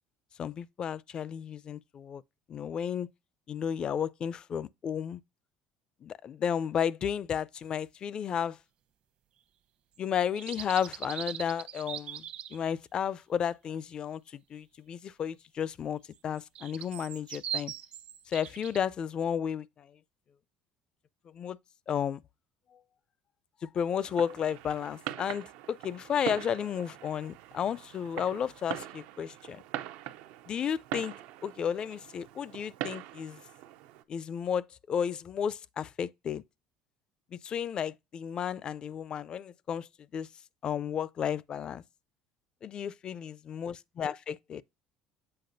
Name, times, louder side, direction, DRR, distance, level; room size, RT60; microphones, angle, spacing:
voice 1, 0.4-2.2 2.5-3.1 3.5-5.2 6.0-8.6 10.0-12.2 12.5-14.2 14.5-17.7 18.3-19.9 21.3-21.6 21.9-22.2 23.6-29.6 30.5-31.1 31.4-33.4 34.1-36.4 37.3-40.3 40.6-41.8 42.6-44.6, left 8 dB, 40° left, 0.4 m, -33 dB
sound 1, 10.2-12.6 16.2-18.8, right 10 dB, 55° right, 0.9 m, -40 dB
Fireworks, 24.0-34.0, right 13 dB, 80° right, 0.6 m, -42 dB
7.7 x 4.8 x 2.6 m
supercardioid pair, 110°, 2 cm